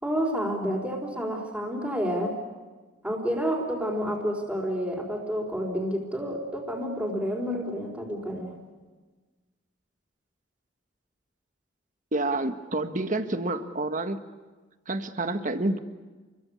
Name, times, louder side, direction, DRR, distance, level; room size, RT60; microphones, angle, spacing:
voice 1, 0.0-2.3 3.0-8.5, equal, 5° right, -3 dB, 4.5 m, -29 dB
voice 2, 12.1-14.2 14.9-15.8, right 2 dB, 45° right, 8 dB, 1.7 m, -28 dB
29.0 x 23.0 x 8.5 m, 1.3 s
head